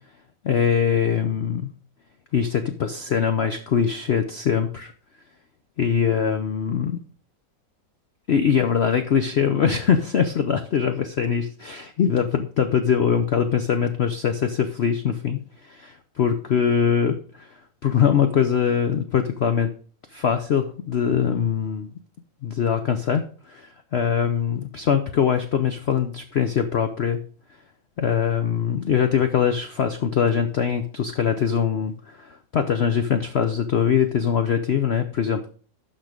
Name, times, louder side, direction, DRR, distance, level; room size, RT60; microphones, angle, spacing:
voice 1, 0.4-1.7 2.3-4.9 5.8-7.0 8.3-17.6 17.8-19.7 20.1-21.9 22.4-23.2 23.5-27.2 28.0-35.5, left 7 dB, 90° left, 8 dB, 0.5 m, -22 dB
12.0 x 4.4 x 5.0 m, 0.43 s
omnidirectional pair, 2.0 m